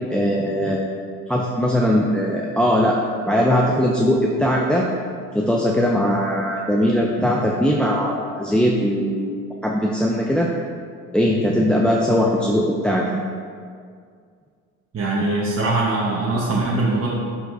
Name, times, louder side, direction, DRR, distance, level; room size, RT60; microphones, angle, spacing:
voice 1, 0.1-0.9 1.3-3.0 3.3-4.9 5.3-9.4 9.6-10.5 11.1-13.2, equal, ahead, -2 dB, 0.5 m, -20 dB
voice 2, 14.9-17.1, right 2 dB, 35° right, -6 dB, 1.2 m, -21 dB
10.5 x 4.5 x 2.7 m, 2.1 s
supercardioid pair, 75°, 40 cm